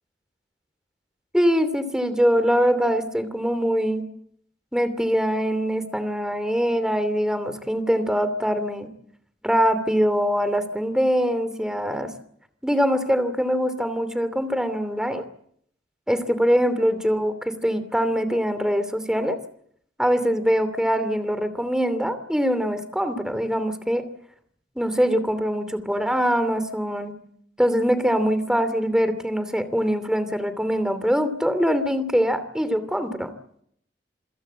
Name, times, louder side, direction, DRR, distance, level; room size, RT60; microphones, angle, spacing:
voice 1, 1.3-4.0 4.7-8.9 9.4-12.1 12.6-15.2 16.1-19.4 20.0-24.0 24.8-27.1 27.6-33.3, equal, 5° right, 11 dB, 2.8 m, -23 dB
28.0 x 16.5 x 8.9 m, 0.69 s
head